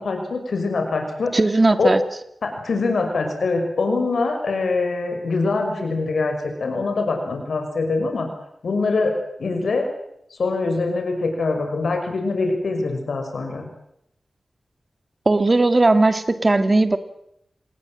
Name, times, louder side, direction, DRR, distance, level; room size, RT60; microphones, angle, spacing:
voice 1, 0.0-1.3 1.8-1.9 2.4-6.3 6.6-8.3 8.6-9.1 9.4-9.9 10.3-13.7, left 3 dB, 80° left, 4 dB, 5.7 m, -23 dB
voice 2, 1.3-2.0 15.3-17.0, right 2 dB, 35° right, 10 dB, 2.5 m, -17 dB
27.5 x 20.0 x 7.7 m, 0.76 s
wide cardioid pair, 85°, 0 cm